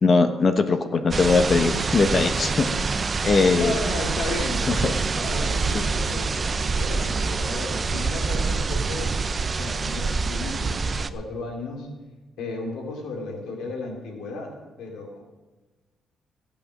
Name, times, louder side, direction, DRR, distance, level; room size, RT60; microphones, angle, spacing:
voice 1, 0.0-2.7 3.2-3.8 4.7-4.9 5.7-5.8, left 4 dB, 45° left, 7 dB, 1.2 m, -20 dB
sound 1, 1.1-11.1, right 4 dB, 35° right, 0.6 m, -26 dB
voice 2, 3.5-9.1 9.6-11.9 12.4-14.5 14.8-15.2, left 3 dB, 85° left, 1 dB, 2.6 m, -34 dB
Wind instrument woodwind instrument, 4.2-10.3, right 2 dB, 70° left, 5.1 m, -46 dB
14.5 x 8.5 x 6.2 m, 1.2 s
cardioid pair, 90°, 0 cm